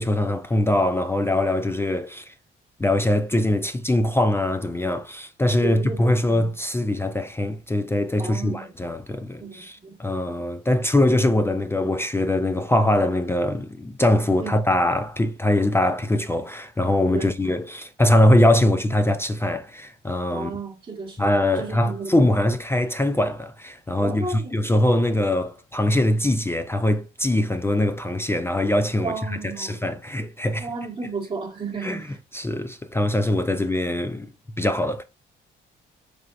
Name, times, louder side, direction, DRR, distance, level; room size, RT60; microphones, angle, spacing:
voice 1, 0.0-2.3 2.8-20.5 21.2-30.7 31.8-32.0 32.3-34.3 34.6-35.0, left 1 dB, 10° left, 0.4 m, -22 dB
voice 2, 5.6-6.5 8.2-8.7 9.4-10.2 14.4-14.5 17.1-17.3 20.3-22.1 24.0-24.6 29.0-29.9 30.6-32.2, right 4 dB, 30° right, 1.0 m, -33 dB
4.3 x 3.3 x 2.4 m
cardioid pair, 90°, 20 cm